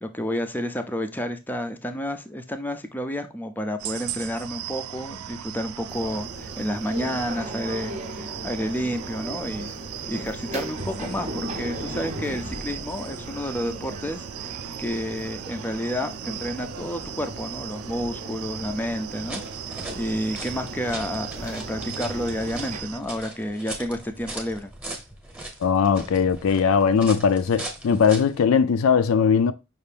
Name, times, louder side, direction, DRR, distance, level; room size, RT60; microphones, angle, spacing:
voice 1, 0.0-9.7 10.1-19.4 19.7-24.7, equal, 10° left, 0.4 m, -30 dB
sound 1, 3.8-23.0, right 11 dB, 85° right, 0.3 m, -38 dB
sound 2, 5.9-22.8, right 1 dB, 35° right, 0.6 m, -37 dB
sound 3, 19.1-28.4, right 1 dB, 5° right, 0.9 m, -39 dB
voice 2, 25.6-29.5, left 6 dB, 70° left, 0.4 m, -20 dB
5.5 x 2.5 x 3.3 m
head